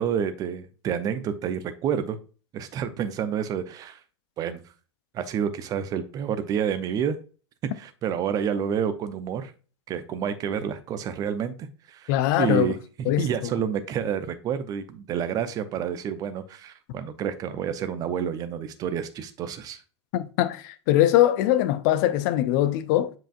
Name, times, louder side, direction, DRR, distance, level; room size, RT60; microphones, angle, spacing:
voice 1, 0.0-2.2 2.5-4.0 4.4-4.6 5.1-7.2 7.8-9.5 9.9-12.1 12.4-19.8, right 8 dB, 25° right, 0.7 m, -29 dB
voice 2, 12.1-12.7 13.1-13.5 20.1-23.1, left 13 dB, 40° left, 0.6 m, -22 dB
7.6 x 5.0 x 2.5 m
figure-of-eight pair, 100°, 15 cm